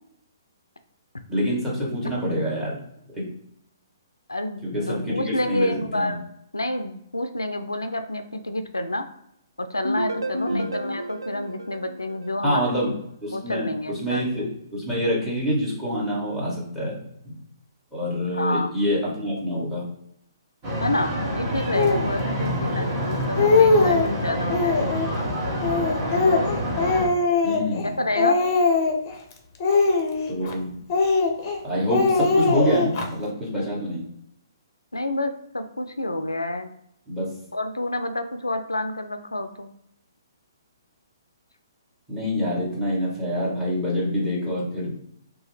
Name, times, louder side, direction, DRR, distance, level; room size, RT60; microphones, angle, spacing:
voice 1, 1.3-2.8 3.1-3.2 4.6-6.2 10.5-10.7 12.4-12.9 13.2-13.7 14.0-16.9 17.2-17.3 17.9-19.8 22.4-22.7 27.4-27.9 30.3-30.7 31.6-34.0 37.1-37.3 42.1-44.9, equal, 10° right, -5 dB, 1.4 m, -26 dB
voice 2, 4.3-6.2 6.5-9.1 9.6-12.8 13.3-14.5 18.2-18.7 20.8-25.0 27.8-28.4 34.9-36.7 37.5-39.7, left 1 dB, 85° left, 8 dB, 0.3 m, -29 dB
sound 1, 9.8-12.8, right 1 dB, 80° right, 0.3 m, -31 dB
sound 2, 20.6-27.1, equal, 30° right, 1.4 m, -27 dB
Speech, 21.7-22.1 22.8-22.9 23.2-24.1 24.5-25.1 25.6-27.9 28.2-29.1 29.6-30.5 30.9-31.6 31.9-33.1, left 3 dB, 35° left, 0.6 m, -21 dB
2.8 x 2.2 x 3.2 m, 0.76 s
figure-of-eight pair, 125°, 2 cm